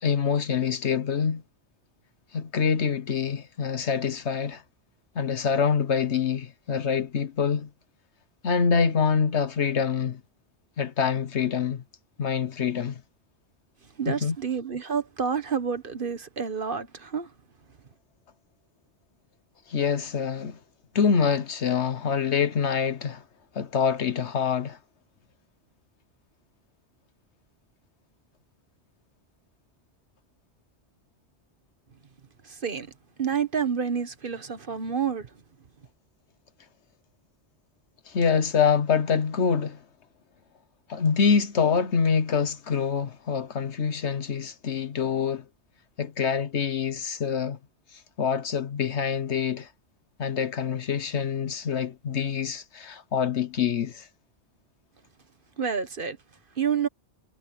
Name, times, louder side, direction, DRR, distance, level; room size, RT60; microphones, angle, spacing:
voice 1, 0.0-1.4 2.3-4.6 5.1-7.7 8.4-10.2 10.8-11.8 12.2-13.0 14.1-14.4 19.7-20.6 20.9-23.2 23.5-24.8 38.1-39.8 40.9-45.4 46.0-47.6 47.9-49.7 50.2-54.1, left 6 dB, 75° left, 1.4 m, -25 dB
voice 2, 14.0-17.3 32.4-32.9 33.2-35.3 55.6-56.2 56.6-56.9, right 6 dB, 50° right, 1.4 m, -29 dB
omnidirectional pair, 1.2 m